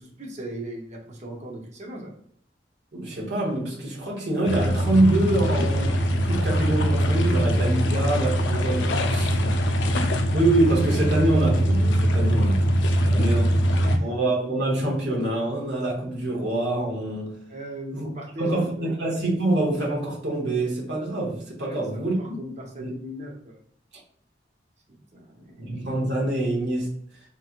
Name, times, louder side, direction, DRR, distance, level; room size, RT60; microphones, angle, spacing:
voice 1, 0.0-2.1 12.9-14.1 17.5-19.0 21.6-23.6 24.9-25.7, right 1 dB, 40° right, 0 dB, 0.7 m, -38 dB
voice 2, 2.9-6.0 6.2-9.3 10.3-13.5 14.0-17.4 17.9-18.1 18.4-22.3 22.8-22.9 25.6-27.0, right 2 dB, 70° right, -2 dB, 1.0 m, -25 dB
sound 1, 4.5-14.0, equal, 80° left, 0.4 m, -22 dB
3.1 x 2.9 x 2.4 m, 0.65 s
head